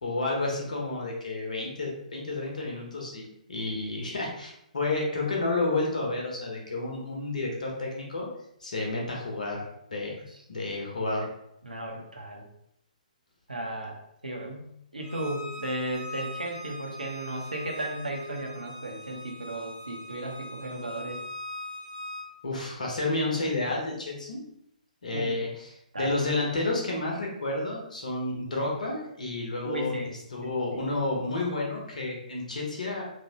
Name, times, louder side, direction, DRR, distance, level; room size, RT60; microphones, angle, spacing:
voice 1, 0.0-8.3 8.6-10.1 10.5-11.3 22.4-24.4 25.0-25.7 26.0-33.0, left 2 dB, 65° left, -1 dB, 0.9 m, -31 dB
voice 2, 11.6-12.5 13.5-14.0 14.2-21.2 25.1-25.3 25.9-26.1 29.6-30.1 30.4-30.5, right 1 dB, 80° right, 0 dB, 0.7 m, -35 dB
Bowed string instrument, 15.0-22.3, left 1 dB, 15° right, 0.4 m, -41 dB
3.1 x 2.1 x 2.9 m, 0.77 s
figure-of-eight pair, 130°, 4 cm